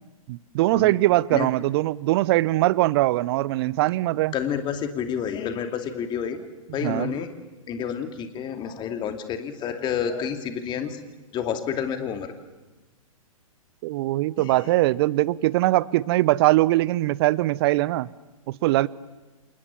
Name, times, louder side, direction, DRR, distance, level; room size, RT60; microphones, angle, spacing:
voice 1, 0.3-4.3 6.8-7.1 13.8-18.1 18.5-18.9, right 17 dB, 45° right, 21 dB, 0.9 m, -21 dB
voice 2, 4.3-6.5 6.7-7.3 7.7-11.0 11.3-12.3 14.4-14.6, left 8 dB, 25° left, 7 dB, 2.7 m, -29 dB
28.5 x 28.0 x 7.5 m, 1.2 s
hypercardioid pair, 120°, 19 cm